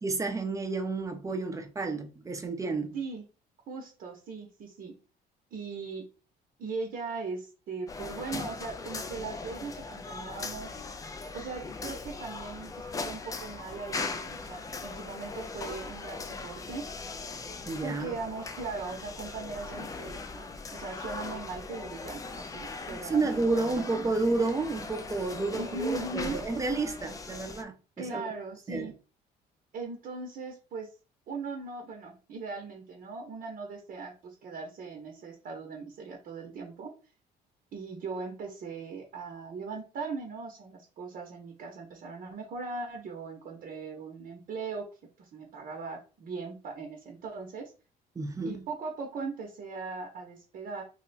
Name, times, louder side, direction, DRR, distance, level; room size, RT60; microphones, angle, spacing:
voice 1, 0.0-3.0 17.7-18.2 22.9-28.2 28.7-28.9 48.2-48.6, right 3 dB, 20° right, 0.6 m, -31 dB
voice 2, 2.9-3.3 3.7-4.9 5.5-6.0 6.6-10.8 11.3-16.9 17.8-20.5 20.7-24.4 25.5-26.4 28.0-28.9 29.7-30.9 31.3-36.9 37.7-44.9 45.2-47.7 48.4-50.8, right 4 dB, 55° right, 0.8 m, -39 dB
sound 1, 7.9-27.6, left 4 dB, 20° left, 0.3 m, -40 dB
2.7 x 2.2 x 4.0 m
cardioid pair, 110°, 17 cm